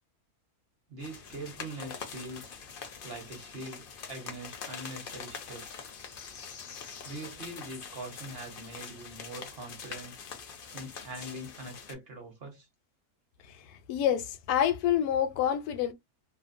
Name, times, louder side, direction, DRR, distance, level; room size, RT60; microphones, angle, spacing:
voice 1, 0.9-2.6 3.0-5.8 7.0-10.1 10.7-12.7, right 2 dB, 50° right, 0.9 m, -43 dB
sound 1, 1.0-11.9, left 6 dB, 65° left, 0.5 m, -44 dB
voice 2, 13.9-15.9, left 10 dB, 85° left, 1.1 m, -27 dB
2.7 x 2.1 x 2.5 m
omnidirectional pair, 1.6 m